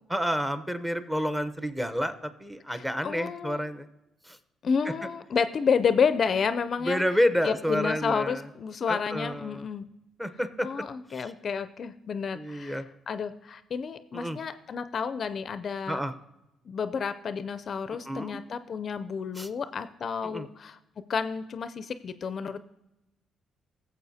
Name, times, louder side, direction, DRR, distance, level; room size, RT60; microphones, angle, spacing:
voice 1, 0.1-3.9 4.2-4.4 6.8-8.5 8.9-9.7 10.2-10.8 11.1-11.3 12.3-12.9 14.1-14.4 15.9-16.1 18.0-18.4 19.4-19.5 20.2-20.5, equal, 10° right, 11 dB, 0.7 m, -29 dB
voice 2, 2.7-3.6 4.6-7.0 7.4-9.9 10.6-16.0 16.7-20.8 21.1-22.6, left 6 dB, 50° left, 12 dB, 0.4 m, -30 dB
15.5 x 7.3 x 2.7 m, 0.91 s
cardioid pair, 90°, 0 cm